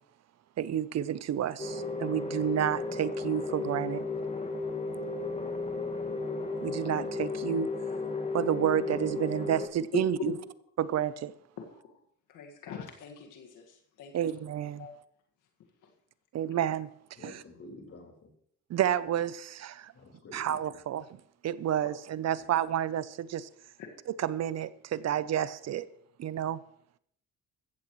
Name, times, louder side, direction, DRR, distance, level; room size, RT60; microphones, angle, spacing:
voice 1, 0.6-4.0 6.6-7.7 8.3-10.3 10.8-11.3 14.1-14.9 16.3-16.9 17.2-17.4 18.7-19.9 20.3-21.1 21.4-23.5 24.1-25.9 26.2-26.6, right 10 dB, 60° right, 0.7 m, -30 dB
sound 1, 1.6-9.7, left 3 dB, 20° left, 1.9 m, -34 dB
voice 2, 9.9-10.3 11.6-11.9 12.3-14.1 14.8-14.9, left 6 dB, 85° left, 1.8 m, -39 dB
voice 3, 17.2-18.3 19.9-20.6 22.3-22.5, left 2 dB, 50° left, 4.4 m, -49 dB
15.0 x 14.5 x 3.1 m
cardioid pair, 90°, 30 cm